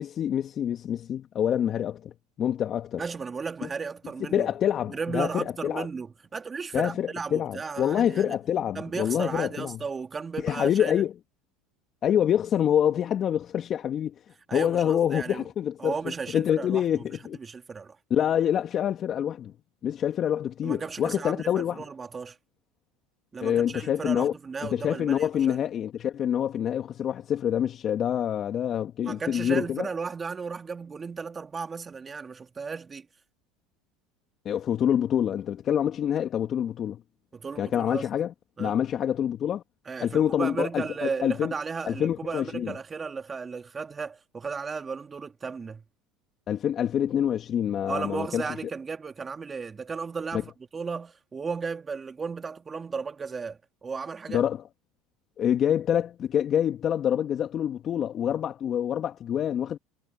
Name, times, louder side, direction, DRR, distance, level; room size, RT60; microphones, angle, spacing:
voice 1, 0.0-2.1 2.4-3.0 4.3-5.9 6.7-9.8 10.4-11.1 12.0-14.1 14.5-15.9 16.3-17.4 18.1-19.5 19.8-21.8 23.4-24.3 24.6-29.9 34.5-37.0 37.6-38.3 38.6-39.6 40.0-41.5 41.9-42.7 46.5-48.4 50.3-50.4 54.3-54.6 55.4-59.8, left 9 dB, 45° left, 2.1 m, -26 dB
voice 2, 3.0-4.5 4.9-8.4 8.7-11.0 14.5-15.5 15.8-17.0 17.3-18.0 20.6-22.4 23.3-25.6 29.0-33.1 37.3-38.1 38.6-38.8 39.8-45.8 47.9-54.5, right 5 dB, 25° right, 2.7 m, -35 dB
hypercardioid pair, 85°, 0 cm